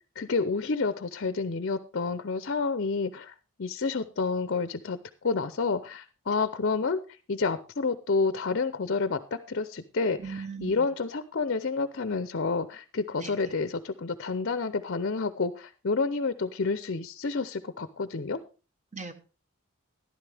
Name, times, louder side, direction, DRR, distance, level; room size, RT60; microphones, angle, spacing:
voice 1, 0.2-3.3 3.6-5.0 5.2-7.0 7.3-9.2 9.5-18.4, left 4 dB, 55° left, 13 dB, 0.6 m, -29 dB
voice 2, 10.2-10.9 13.2-13.5 18.9-19.1, right 5 dB, 35° right, 8 dB, 1.2 m, -39 dB
13.5 x 11.5 x 3.4 m, 0.33 s
head